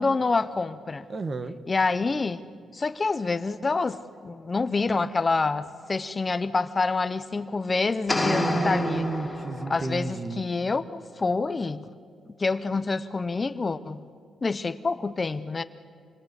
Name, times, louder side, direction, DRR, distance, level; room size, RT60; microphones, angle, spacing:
voice 1, 0.0-1.1 1.7-2.4 2.7-9.0 9.7-11.9 12.3-14.0 14.4-15.6, left 3 dB, 25° left, 0.7 m, -27 dB
voice 2, 1.1-1.6 8.2-10.4, right 3 dB, 30° right, 1.2 m, -31 dB
sound 1, 8.1-10.0, left 1 dB, 5° left, 3.2 m, -28 dB
28.5 x 23.5 x 8.2 m
wide cardioid pair, 165°, 0 cm